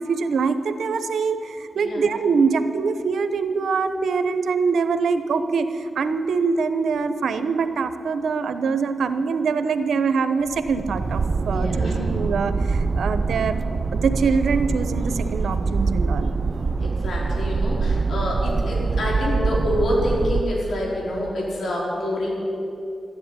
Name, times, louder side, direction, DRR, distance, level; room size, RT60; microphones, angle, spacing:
voice 1, 0.0-13.6 13.9-16.3, right 5 dB, 85° right, 10 dB, 0.9 m, -24 dB
sound 1, 10.5-20.4, right 4 dB, 50° right, 0.6 m, -24 dB
voice 2, 11.5-12.0 16.8-22.3, left 1 dB, 75° left, -3 dB, 4.3 m, -27 dB
13.5 x 10.5 x 9.7 m, 2.7 s
cardioid pair, 70°, 0 cm